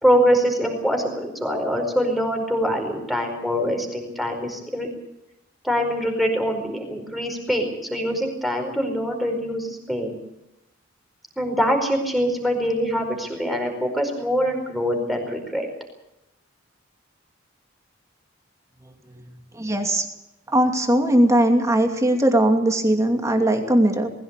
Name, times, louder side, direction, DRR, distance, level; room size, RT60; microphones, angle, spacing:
voice 1, 0.0-4.9 5.6-10.2 11.4-15.7, equal, ahead, 3 dB, 4.8 m, -24 dB
voice 2, 18.8-19.2 19.5-20.1 20.5-24.1, right 1 dB, 15° right, 4 dB, 2.6 m, -19 dB
20.5 x 16.5 x 8.3 m, 0.89 s
head